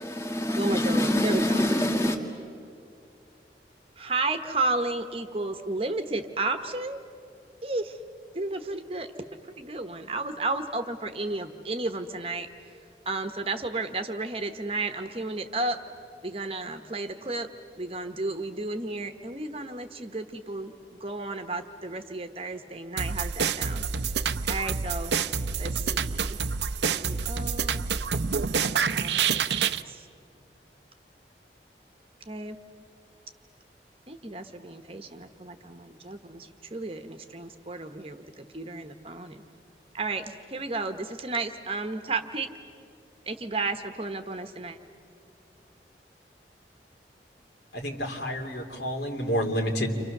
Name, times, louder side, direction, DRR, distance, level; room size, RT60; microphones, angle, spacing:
voice 1, 0.0-2.2, left 1 dB, 15° left, 2 dB, 1.9 m, -25 dB
voice 2, 0.6-1.6 4.0-7.0 7.6-8.0 8.3-9.1 9.4-12.5 13.0-15.8 16.2-17.5 17.8-23.9 24.4-25.1 25.6-26.4 26.8-27.8 28.9-29.6 29.9-30.1 32.3-32.6 34.1-39.4 39.9-42.5 43.3-44.8, right 2 dB, 35° right, 7 dB, 1.1 m, -33 dB
sound 1, 23.0-29.8, right 6 dB, 85° right, 0.7 m, -27 dB
voice 3, 47.7-49.9, equal, 75° left, 2 dB, 3.1 m, -29 dB
30.0 x 26.5 x 6.7 m, 2.4 s
head